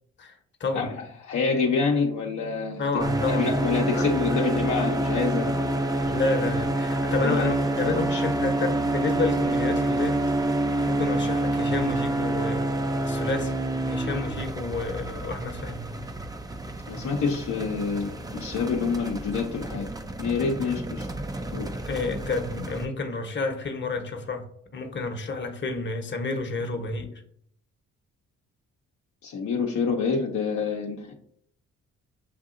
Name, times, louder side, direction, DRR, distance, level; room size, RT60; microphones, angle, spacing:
voice 1, 0.2-0.9 2.8-3.6 3.9-4.6 5.3-5.6 6.0-10.2 10.8-15.9 20.6-20.7 21.9-24.5 24.7-27.1, left 3 dB, 35° left, 4 dB, 1.0 m, -30 dB
voice 2, 0.7-2.8 3.3-5.7 7.2-7.5 8.0-8.2 16.9-19.9 20.2-21.1 21.5-21.7 29.2-31.1, left 5 dB, 55° left, 0 dB, 0.8 m, -27 dB
sound 1, 3.0-22.9, right 1 dB, 10° right, 0.5 m, -28 dB
6.7 x 2.7 x 2.5 m, 0.66 s
hypercardioid pair, 50°, 34 cm